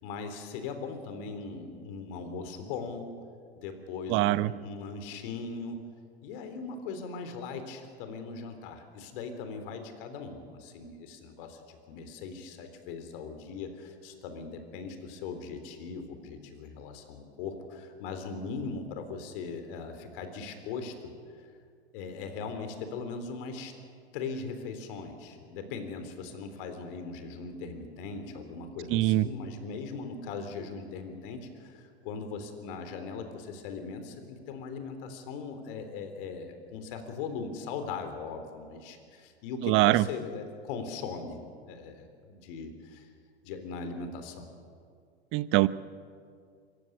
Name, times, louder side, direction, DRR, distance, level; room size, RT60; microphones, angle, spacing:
voice 1, 0.0-3.1 3.6-5.8 6.2-20.9 21.3-21.5 21.9-23.7 24.1-41.4 41.7-43.1 43.4-44.5, left 4 dB, 55° left, 7 dB, 3.6 m, -39 dB
voice 2, 4.1-4.5 28.9-29.3 39.6-40.0 45.3-45.7, right 17 dB, 40° right, 17 dB, 0.7 m, -23 dB
25.0 x 15.0 x 9.4 m, 2.2 s
hypercardioid pair, 100°, 32 cm